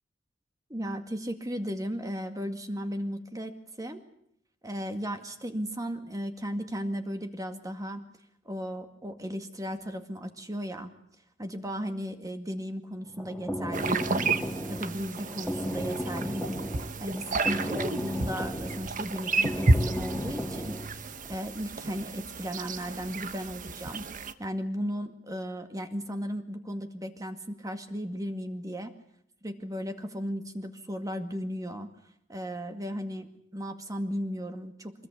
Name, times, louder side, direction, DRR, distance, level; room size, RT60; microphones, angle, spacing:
voice 1, 0.7-4.0 4.6-8.1 8.5-10.9 11.4-14.3 14.7-16.7 17.0-24.0 24.4-28.9 29.4-31.9 32.3-35.1, equal, 20° right, 6 dB, 2.0 m, -35 dB
sound 1, 13.0-20.9, equal, 5° left, 2.8 m, -35 dB
sound 2, 13.7-24.3, right 3 dB, 45° right, 1.2 m, -31 dB
25.0 x 20.5 x 8.4 m, 0.71 s
head